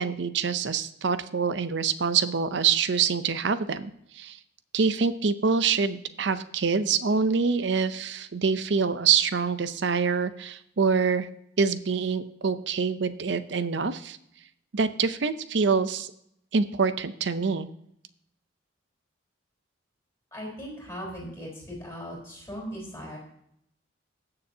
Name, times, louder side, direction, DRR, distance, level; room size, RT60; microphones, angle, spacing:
voice 1, 0.0-4.4 4.7-11.3 11.6-14.2 14.7-16.1 16.5-17.7, right 5 dB, 60° right, 13 dB, 0.6 m, -25 dB
voice 2, 20.3-23.2, equal, 15° left, -3 dB, 4.0 m, -38 dB
19.0 x 6.8 x 2.8 m, 0.74 s
head